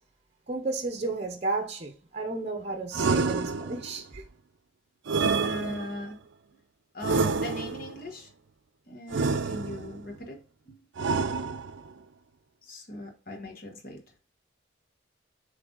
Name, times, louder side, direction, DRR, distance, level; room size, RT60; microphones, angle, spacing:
voice 1, 0.5-4.2, right 3 dB, 30° right, 0.7 m, -33 dB
sound 1, 2.9-4.0 5.1-6.1 7.0-8.0 9.1-10.0 11.0-11.9, right 4 dB, 75° right, 0.5 m, -28 dB
voice 2, 5.4-6.2 6.9-8.3 8.9-10.4 10.6-10.8 12.6-14.0, left 1 dB, 45° left, 1.3 m, -39 dB
7.6 x 3.4 x 3.8 m
head